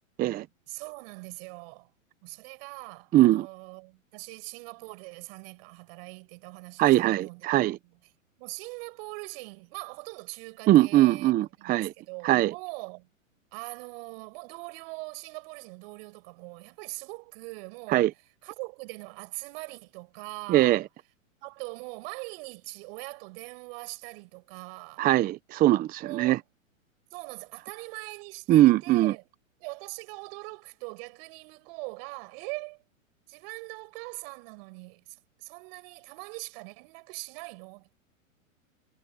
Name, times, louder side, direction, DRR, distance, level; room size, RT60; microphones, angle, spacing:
voice 1, 0.7-1.9 2.2-7.5 8.4-11.3 11.6-13.1 13.5-18.2 18.4-20.8 21.4-25.1 26.0-26.4 27.1-29.2 29.6-32.8 33.3-37.9, right 31 dB, 45° right, 7.2 m, -42 dB
voice 2, 3.1-3.5 6.8-7.8 10.7-11.9 12.2-12.5 17.9-18.1 20.5-20.8 25.0-26.4 28.5-29.1, right 15 dB, 20° right, 0.8 m, -21 dB
hypercardioid pair, 130°, 41 cm